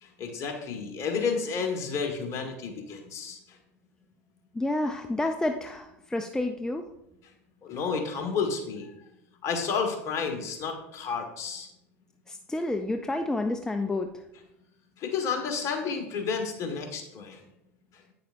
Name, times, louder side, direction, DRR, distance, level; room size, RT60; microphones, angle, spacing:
voice 1, 0.0-3.4 7.6-8.9 9.4-11.7 15.0-17.4, left 5 dB, 45° left, 3 dB, 1.6 m, -31 dB
voice 2, 4.5-6.9 12.3-14.1, left 2 dB, 10° left, 6 dB, 0.5 m, -29 dB
8.9 x 6.8 x 2.6 m, 0.84 s
hypercardioid pair, 85°, 8 cm